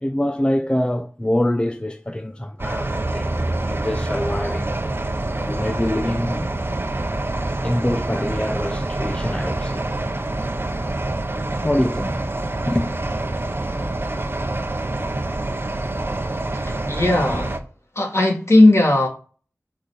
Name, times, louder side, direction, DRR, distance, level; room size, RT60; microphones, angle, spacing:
voice 1, 0.0-4.8 5.4-6.5 7.6-9.8 11.6-12.3 12.7-12.9, left 1 dB, 20° left, 0.6 m, -25 dB
sound 1, 2.6-17.6, right 2 dB, 45° right, 0.9 m, -26 dB
voice 2, 16.5-17.6 18.0-19.1, left 2 dB, 60° left, 2.1 m, -17 dB
6.2 x 4.1 x 4.9 m
wide cardioid pair, 45°, 5 cm